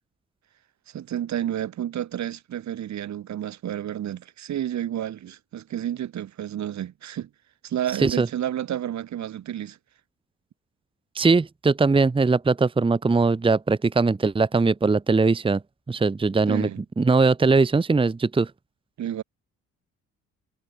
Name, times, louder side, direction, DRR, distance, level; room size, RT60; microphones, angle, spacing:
voice 1, 0.9-7.3 7.6-9.8 16.5-16.8 19.0-19.2, right 11 dB, 65° right, 2.7 m, -30 dB
voice 2, 11.1-15.6 15.9-16.7 17.0-18.5, right 3 dB, 15° right, 1.0 m, -20 dB
cardioid pair, 90°, 30 cm